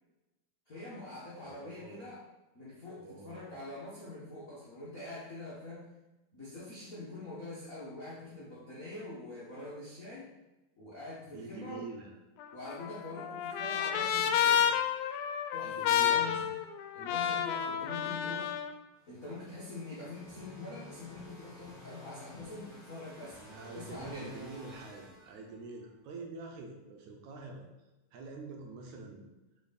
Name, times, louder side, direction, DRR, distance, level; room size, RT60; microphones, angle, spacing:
voice 1, 0.7-2.2 2.5-5.9 6.3-10.3 10.8-11.8 12.5-14.7 15.5-16.4 16.9-18.5 19.1-23.4 23.7-24.3, left 2 dB, 55° left, -9 dB, 0.9 m, -44 dB
voice 2, 1.4-2.1 3.0-3.6 11.2-12.2 15.6-16.5 23.4-27.6 28.1-29.2, right 3 dB, 75° right, 1 dB, 2.1 m, -46 dB
Trumpet, 12.4-18.7, left 9 dB, 80° left, 1.9 m, -30 dB
sound 1, 19.0-25.9, left 1 dB, 15° right, 1.0 m, -53 dB
6.1 x 4.7 x 4.1 m, 1.0 s
omnidirectional pair, 3.6 m